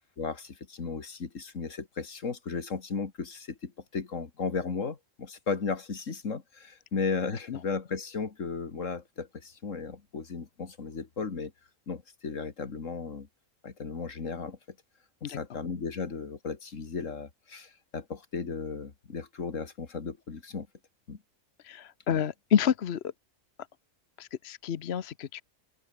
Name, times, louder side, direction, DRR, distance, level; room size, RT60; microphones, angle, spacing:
voice 1, 0.2-11.5 11.9-13.3 13.6-14.6 15.3-20.7 21.1-21.2 22.1-22.2, left 5 dB, 75° left, 2.4 m, -35 dB
voice 2, 21.6-23.0 24.2-25.4, left 8 dB, 55° left, 1.0 m, -29 dB
open air
omnidirectional pair, 1.3 m